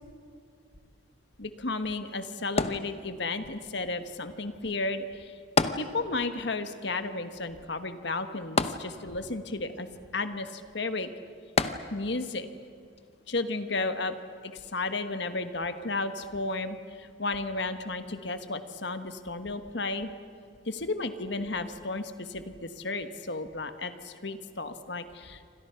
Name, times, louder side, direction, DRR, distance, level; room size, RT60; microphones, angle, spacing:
voice 1, 1.4-5.4 5.8-9.9 10.1-11.1 11.9-12.5 13.3-14.1 14.4-20.1 20.6-25.5, left 3 dB, 65° left, 9 dB, 1.4 m, -33 dB
sound 1, 2.6-3.5 5.6-6.4 6.7-6.8 8.6-9.4 11.6-12.3 13.0-13.1, left 3 dB, 30° left, 0.8 m, -29 dB
28.5 x 25.5 x 5.8 m, 2.3 s
head